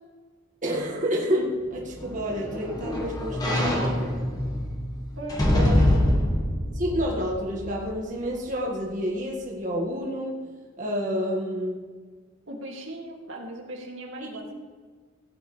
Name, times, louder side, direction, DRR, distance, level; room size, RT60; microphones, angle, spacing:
voice 1, 0.6-3.9 5.5-5.7 6.8-10.4 10.8-11.9 14.3-14.5, equal, 40° right, -2 dB, 1.7 m, -29 dB
sound 1, 1.7-8.0 8.5-8.6, left 1 dB, 20° left, 1.6 m, -25 dB
voice 2, 3.5-4.0 5.2-5.9 12.5-14.5, right 1 dB, 75° right, 0 dB, 2.2 m, -37 dB
16.0 x 9.6 x 3.3 m, 1.5 s
head